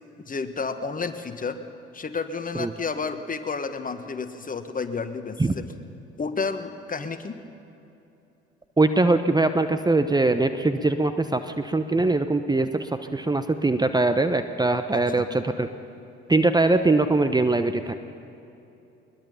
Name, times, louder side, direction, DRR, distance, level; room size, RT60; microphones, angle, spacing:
voice 1, 0.2-1.6 1.9-5.6 6.2-7.4 12.0-12.1 14.9-15.2, left 4 dB, 30° left, 9 dB, 1.5 m, -31 dB
voice 2, 8.8-15.7 16.3-17.9, right 2 dB, 15° right, 9 dB, 1.0 m, -22 dB
21.5 x 21.5 x 5.7 m, 2.9 s
figure-of-eight pair, 55°, 29 cm